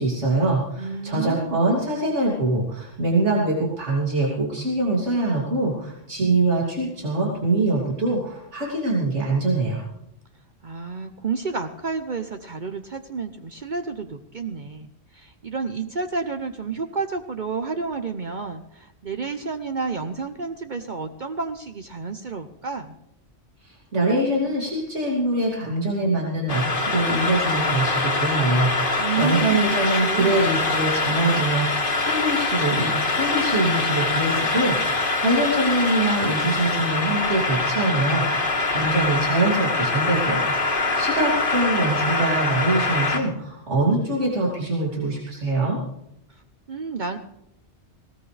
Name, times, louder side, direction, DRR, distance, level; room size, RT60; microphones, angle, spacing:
voice 1, 0.0-9.9 23.6-45.8, right 2 dB, 85° right, -4 dB, 3.1 m, -24 dB
voice 2, 0.8-1.8 10.6-23.0 29.0-30.5 46.3-46.4 46.7-47.2, right 4 dB, 45° right, 7 dB, 0.9 m, -30 dB
sound 1, 26.5-43.2, left 3 dB, 50° left, 1.8 m, -24 dB
20.0 x 17.5 x 3.3 m, 0.79 s
omnidirectional pair, 1.2 m